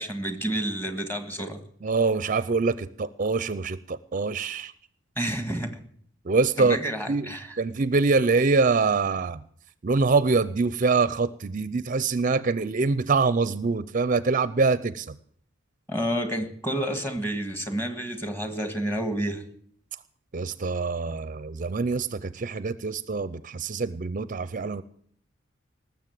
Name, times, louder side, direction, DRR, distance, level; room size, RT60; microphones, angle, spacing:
voice 1, 0.0-1.6 5.2-5.8 6.6-7.6 15.9-19.4, right 1 dB, 10° left, 8 dB, 1.6 m, -30 dB
voice 2, 1.8-4.7 6.2-6.8 7.1-7.3 7.6-9.4 9.8-15.1 20.3-24.8, right 4 dB, 45° right, 15 dB, 0.5 m, -24 dB
19.5 x 7.1 x 9.2 m, 0.62 s
head